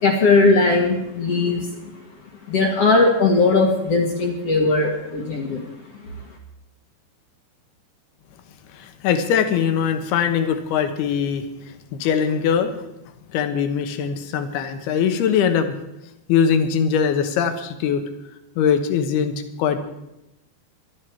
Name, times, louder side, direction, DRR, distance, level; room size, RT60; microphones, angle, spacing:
voice 1, 0.0-1.7 2.5-5.6, left 3 dB, 50° left, 1 dB, 1.9 m, -18 dB
voice 2, 8.7-11.4 11.9-12.7 13.3-15.8 16.3-18.0 18.6-19.8, left 7 dB, 70° left, 8 dB, 3.0 m, -21 dB
19.5 x 12.5 x 4.6 m, 0.91 s
omnidirectional pair, 5.0 m